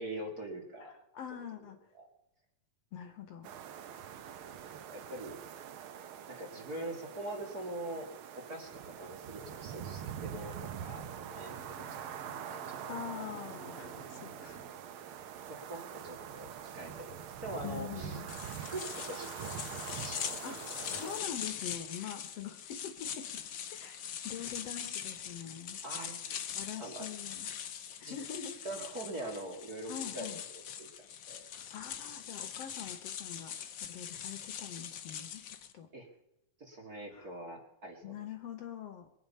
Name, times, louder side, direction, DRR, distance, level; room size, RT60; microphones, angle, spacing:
voice 1, 0.0-0.9 1.9-2.1 4.9-5.4 6.3-8.1 8.3-11.6 11.9-12.1 12.5-13.0 15.5-17.2 17.4-18.2 18.6-20.5 25.8-26.4 26.8-27.1 28.0-28.1 28.6-30.4 30.8-30.9 31.3-31.4 35.9-36.1 36.6-38.1, right 1 dB, 35° right, 2 dB, 2.3 m, -43 dB
voice 2, 0.9-1.8 2.9-3.5 12.9-14.7 15.0-15.2 17.6-18.3 20.4-23.4 23.7-24.0 24.2-25.8 26.6-27.5 28.0-28.6 29.9-30.4 31.7-35.4 35.7-35.9 37.1-37.3 38.0-39.1, left 8 dB, 65° left, 7 dB, 2.0 m, -44 dB
sound 1, 3.4-21.2, right 9 dB, 70° right, 1.2 m, -44 dB
Drum, 11.5-15.2, right 4 dB, 55° right, 2.3 m, -51 dB
sound 2, 18.3-35.7, left 9 dB, 90° left, 1.0 m, -42 dB
22.5 x 9.2 x 5.5 m, 0.89 s
omnidirectional pair, 3.5 m